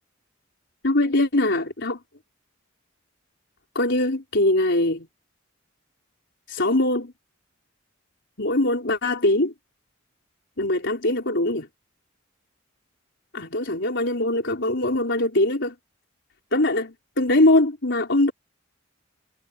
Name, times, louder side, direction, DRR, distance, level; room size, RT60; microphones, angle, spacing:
voice 1, 0.8-2.0 3.7-5.1 6.5-7.1 8.4-9.5 10.6-11.7 13.3-15.7 16.5-18.3, left 1 dB, 60° left, 4.3 m, -22 dB
head